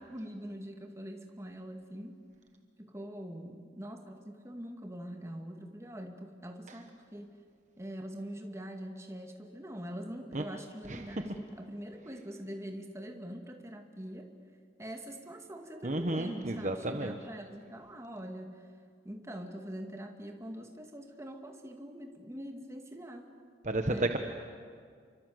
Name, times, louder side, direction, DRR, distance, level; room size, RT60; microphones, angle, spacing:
voice 1, 0.0-2.1 2.8-7.3 7.8-14.3 14.8-18.6 19.0-23.3 23.8-24.1, equal, 15° right, 3 dB, 2.2 m, -43 dB
voice 2, 15.8-17.1 23.6-24.2, right 1 dB, 40° right, 5 dB, 1.2 m, -31 dB
28.5 x 24.5 x 8.0 m, 2.1 s
head